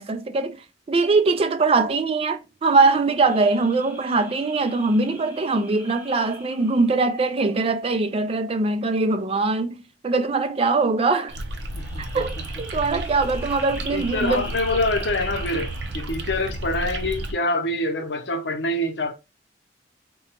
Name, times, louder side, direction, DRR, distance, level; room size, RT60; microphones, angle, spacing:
voice 1, 0.0-9.8 10.0-11.4 12.0-14.5, right 3 dB, 35° right, 0.3 m, -22 dB
sound 1, 3.0-7.8 11.6-16.3, right 1 dB, 10° right, 0.9 m, -43 dB
sound 2, 11.3-17.3, right 1 dB, 80° right, 0.6 m, -32 dB
voice 2, 11.7-12.4 13.9-19.1, left 2 dB, 75° left, 0.8 m, -26 dB
3.9 x 2.3 x 2.8 m
head